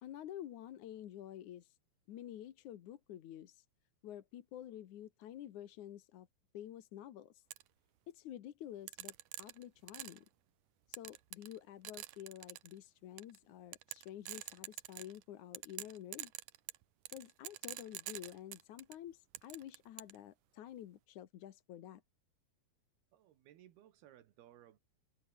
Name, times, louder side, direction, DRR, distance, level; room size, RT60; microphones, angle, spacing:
voice 1, 0.0-1.8 2.1-3.7 4.0-6.3 6.5-7.4 8.1-10.3 10.9-16.3 17.1-22.0, left 11 dB, 60° left, 2.4 m, -50 dB
sound 1, 7.5-7.6 8.9-10.3 10.9-11.6 11.9-12.7 13.2-13.4 13.7-15.2 15.5-19.0 19.4-20.2, right 15 dB, 70° right, 2.2 m, -46 dB
voice 2, 23.1-24.8, right 12 dB, 90° right, 3.7 m, -61 dB
omnidirectional pair, 4.4 m